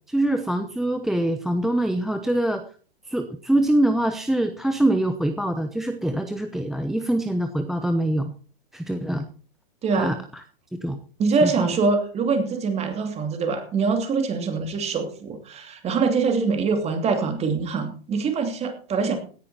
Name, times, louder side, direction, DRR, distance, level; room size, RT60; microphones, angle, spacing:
voice 1, 0.1-2.6 3.1-8.3 8.7-9.3 9.9-10.2 10.7-11.0 11.4-11.7, right 1 dB, ahead, 8 dB, 0.5 m, -24 dB
voice 2, 9.8-10.1 11.2-19.2, right 4 dB, 20° right, 6 dB, 2.8 m, -24 dB
17.0 x 10.0 x 4.3 m, 0.41 s
hypercardioid pair, 135°, 30 cm